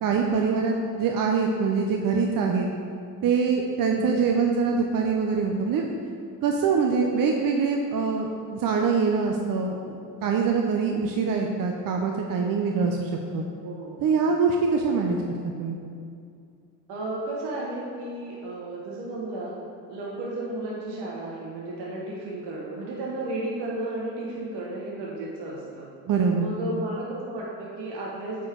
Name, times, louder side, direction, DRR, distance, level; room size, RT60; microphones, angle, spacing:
voice 1, 0.0-2.7 3.2-5.9 6.4-13.5 14.0-15.2 15.6-15.8 26.1-26.5, right 5 dB, 45° right, 2 dB, 0.8 m, -24 dB
voice 2, 3.9-4.2 13.6-14.0 16.9-19.5 19.9-25.9 26.4-28.5, right 2 dB, 60° right, -4 dB, 1.5 m, -33 dB
8.5 x 4.7 x 4.6 m, 2.4 s
hypercardioid pair, 65°, 46 cm